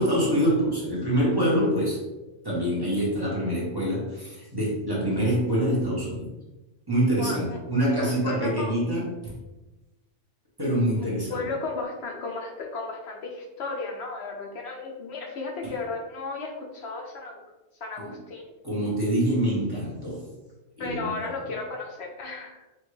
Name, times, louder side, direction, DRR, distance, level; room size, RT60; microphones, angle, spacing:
voice 1, 0.0-2.0 2.4-6.3 6.9-9.3 10.6-11.4 15.6-15.7 18.0-18.1 18.6-20.3 20.8-21.3, equal, 20° right, -6 dB, 1.0 m, -25 dB
voice 2, 7.2-7.6 8.0-8.7 11.0-17.4 17.8-18.5 20.8-22.7, left 3 dB, 70° left, 1 dB, 0.9 m, -34 dB
4.5 x 2.6 x 3.2 m, 1.1 s
omnidirectional pair, 1.2 m